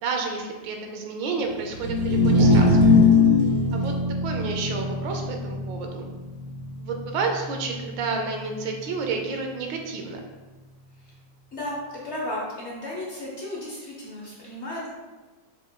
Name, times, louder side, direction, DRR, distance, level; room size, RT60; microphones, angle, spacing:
voice 1, 0.0-2.8 3.7-3.9 4.2-6.1 6.8-10.2, right 4 dB, 90° right, 3 dB, 1.4 m, -30 dB
sound 1, 1.7-8.1, left 3 dB, 60° right, 1.1 m, -21 dB
voice 2, 11.5-14.9, left 1 dB, 50° left, -5 dB, 0.9 m, -34 dB
4.8 x 4.7 x 2.2 m, 1.2 s
omnidirectional pair, 2.0 m